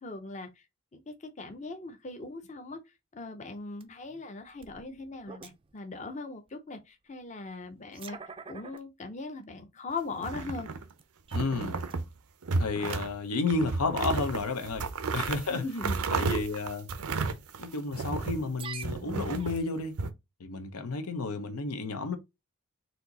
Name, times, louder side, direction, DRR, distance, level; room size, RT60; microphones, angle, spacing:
voice 1, 0.0-0.6 0.9-2.8 3.1-8.2 8.5-10.7 15.5-16.0 16.3-16.4, left 3 dB, 30° left, 0.6 m, -39 dB
sound 1, 3.8-3.9 4.5-5.8 6.5-6.6 7.6-8.8 9.4-9.5 10.2-10.3 10.8-11.5 11.8-12.0 13.0-13.1 13.3-13.6 14.4-14.6 15.4-15.7 16.2-16.3 17.3-17.4 18.4-19.9, right 5 dB, 25° right, 0.4 m, -46 dB
sound 2, 10.2-10.9 11.3-12.1 12.4-13.1 13.5-18.4 18.8-20.1, right 4 dB, 90° right, 0.6 m, -32 dB
voice 2, 11.3-11.7 12.6-15.7 16.1-16.9 17.6-20.0 20.4-22.2, left 3 dB, 85° left, 0.8 m, -31 dB
4.3 x 2.7 x 3.9 m
head